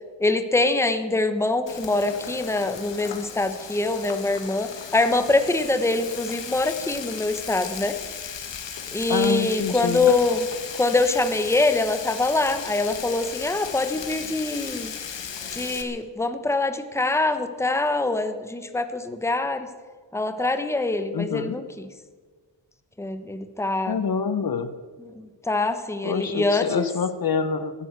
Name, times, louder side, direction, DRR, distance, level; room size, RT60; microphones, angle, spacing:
voice 1, 0.2-7.9 8.9-10.5 10.8-14.9 15.5-19.7 20.1-21.8 23.0-24.0 25.2-26.9, left 2 dB, 5° left, 9 dB, 1.0 m, -24 dB
Frying (food), 1.7-15.8, left 7 dB, 80° left, 1.8 m, -36 dB
voice 2, 9.1-10.1 21.1-21.6 23.9-24.7 26.0-27.7, left 5 dB, 55° left, 12 dB, 1.0 m, -26 dB
15.0 x 11.5 x 8.2 m, 1.5 s
wide cardioid pair, 140°, 43 cm